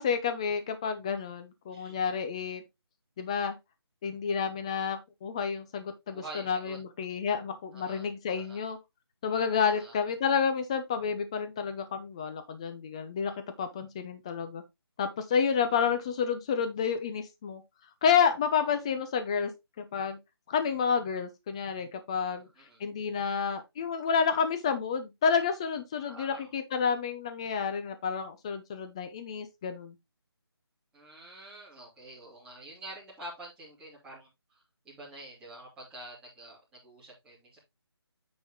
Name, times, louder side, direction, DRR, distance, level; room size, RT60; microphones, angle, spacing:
voice 1, 0.0-2.6 3.2-3.6 4.0-8.8 9.2-14.6 15.0-17.6 18.0-19.5 19.8-20.2 20.5-22.5 22.8-30.0, left 6 dB, 15° left, 0.6 m, -30 dB
voice 2, 6.1-6.8 7.7-8.1 8.3-8.6 9.6-10.0 22.3-22.8 26.0-26.5 30.9-37.6, right 1 dB, 5° right, 2.7 m, -47 dB
9.0 x 4.2 x 3.7 m
figure-of-eight pair, 165°, 14 cm